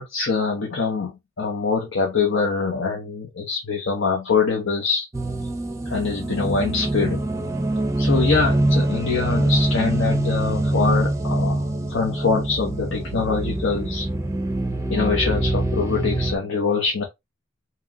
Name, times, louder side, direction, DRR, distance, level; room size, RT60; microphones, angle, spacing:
voice 1, 0.0-5.0 5.9-7.3 8.0-14.1 14.9-17.0, left 4 dB, 65° left, 0.9 m, -24 dB
sound 1, 5.1-16.4, right 1 dB, 15° right, 0.6 m, -24 dB
3.0 x 2.9 x 3.5 m
head